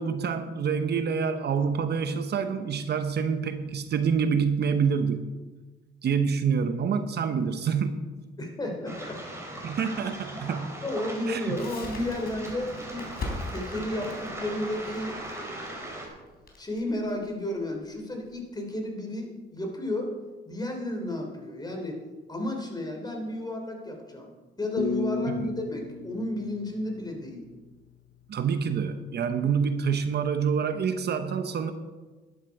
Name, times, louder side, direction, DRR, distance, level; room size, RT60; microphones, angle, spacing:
voice 1, 0.0-5.3 6.0-8.2 9.6-10.8 11.3-11.6 25.3-25.5 28.3-31.7, right 6 dB, 55° right, 9 dB, 0.9 m, -27 dB
voice 2, 8.4-9.2 10.8-13.1 13.5-16.0 16.6-20.1 20.4-22.0 22.3-27.5, left 1 dB, 20° left, 2 dB, 3.2 m, -33 dB
Waves surf, 8.9-16.1, right 1 dB, 15° right, 3.7 m, -39 dB
Crackle, 11.6-18.4, left 2 dB, 50° left, 3.7 m, -40 dB
sound 1, 24.8-27.7, left 4 dB, 70° left, 0.9 m, -34 dB
12.0 x 10.5 x 4.8 m, 1.3 s
cardioid pair, 90°, 20 cm